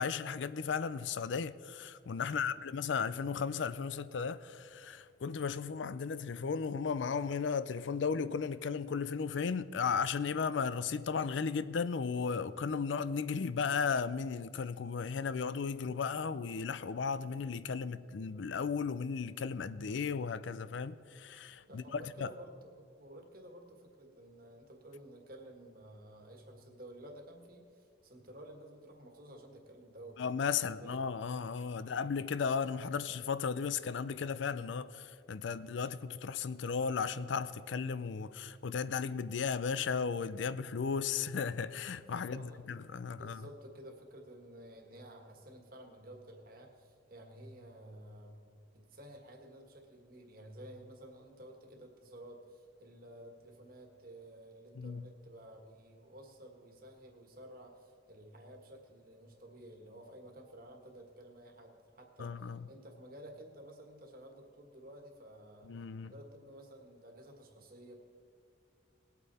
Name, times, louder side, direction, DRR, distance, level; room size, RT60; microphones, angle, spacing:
voice 1, 0.0-22.3 30.2-43.4 54.8-55.0 62.2-62.7 65.7-66.1, left 5 dB, 75° left, 0.4 m, -35 dB
voice 2, 2.2-2.6 21.7-30.2 30.6-31.1 31.7-32.0 42.3-42.7 43.2-48.4 48.7-65.7 66.0-67.9, right 1 dB, 50° right, 1.7 m, -53 dB
19.5 x 8.4 x 4.2 m
head